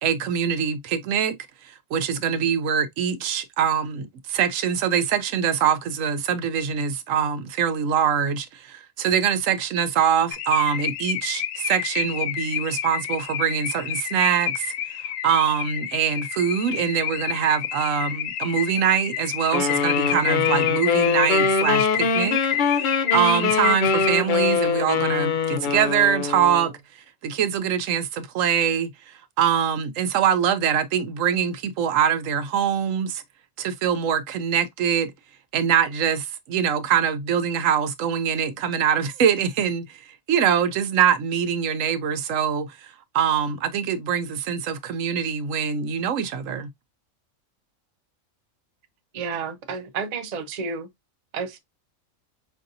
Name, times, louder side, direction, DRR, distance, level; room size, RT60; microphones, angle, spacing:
voice 1, 0.0-1.4 1.6-14.7 15.2-22.9 23.1-26.7 27.2-28.9 29.4-33.2 33.6-35.1 35.5-46.7, right 8 dB, 75° right, 1.0 m, -23 dB
Car / Alarm, 10.3-24.5, left 10 dB, 80° left, 1.0 m, -29 dB
sound 1, 19.5-26.7, left 5 dB, 65° left, 0.5 m, -23 dB
voice 2, 49.1-50.9 51.3-51.6, right 5 dB, 45° right, 0.6 m, -31 dB
5.3 x 2.6 x 2.6 m
omnidirectional pair, 1.4 m